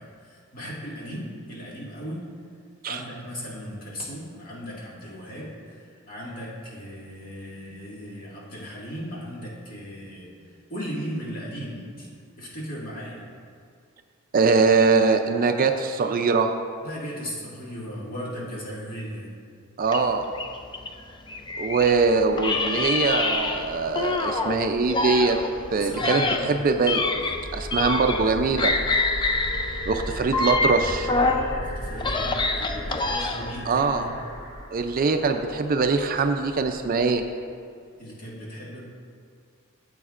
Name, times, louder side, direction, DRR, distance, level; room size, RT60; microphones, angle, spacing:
voice 1, 0.0-2.3 2.8-12.1 12.4-13.2 16.8-19.3 25.7-26.4 31.1-34.1 38.0-38.8, equal, 45° left, -6 dB, 2.1 m, -37 dB
voice 2, 14.3-16.5 19.8-20.2 21.6-25.4 25.7-28.7 29.9-31.1 33.7-34.1 34.7-37.2, right 4 dB, 40° right, 6 dB, 0.4 m, -22 dB
sound 1, 19.9-22.0 22.4-24.6 24.9-28.3 28.6-31.5 31.9-33.6, left 3 dB, 20° left, 0.4 m, -26 dB
sound 2, 21.8-37.2, equal, 80° left, 1.8 m, -38 dB
13.5 x 7.7 x 2.5 m, 2.2 s
head